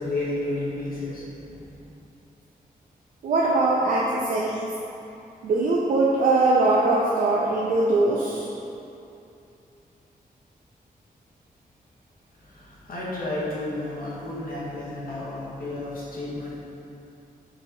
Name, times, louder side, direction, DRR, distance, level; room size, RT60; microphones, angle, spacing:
voice 1, 0.0-1.8 12.4-16.6, left 2 dB, 65° left, -7 dB, 1.1 m, -32 dB
voice 2, 3.2-4.7 5.4-8.5, right 2 dB, 65° right, -4 dB, 0.4 m, -21 dB
4.8 x 2.8 x 3.8 m, 2.7 s
wide cardioid pair, 170°, 16 cm